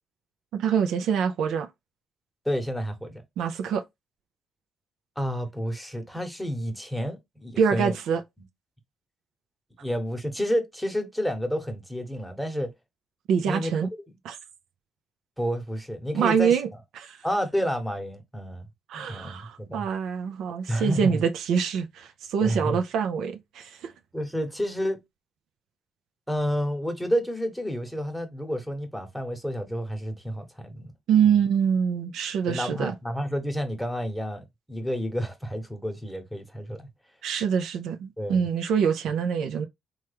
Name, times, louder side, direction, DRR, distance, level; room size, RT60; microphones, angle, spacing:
voice 1, 0.5-1.7 3.4-3.8 7.6-8.2 13.3-13.9 14.2-14.4 16.1-16.7 17.0-17.2 18.9-23.9 31.1-32.9 37.2-39.7, right 7 dB, 80° right, 0.4 m, -25 dB
voice 2, 2.4-3.2 5.2-7.9 9.8-12.7 13.4-13.7 15.4-16.6 17.2-18.7 18.9-19.9 20.7-21.2 22.4-22.8 24.1-25.0 26.3-30.9 31.2-31.4 32.5-36.9 38.2-38.4, equal, ahead, 1.0 m, -30 dB
3.1 x 2.3 x 3.3 m
cardioid pair, 70°, 0 cm